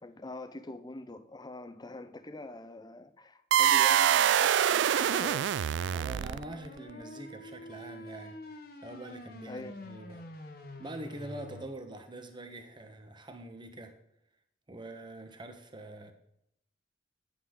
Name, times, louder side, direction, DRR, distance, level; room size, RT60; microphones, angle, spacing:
voice 1, 0.0-5.7 9.5-9.7, left 2 dB, 25° left, 0.6 m, -44 dB
sound 1, 3.5-6.7, right 10 dB, 90° right, 0.3 m, -25 dB
sound 2, 5.7-11.7, left 1 dB, 60° left, 1.2 m, -47 dB
voice 2, 5.9-8.4 8.8-10.2 10.8-14.0 14.7-16.1, right 1 dB, 25° right, 1.1 m, -44 dB
10.0 x 8.4 x 3.8 m
head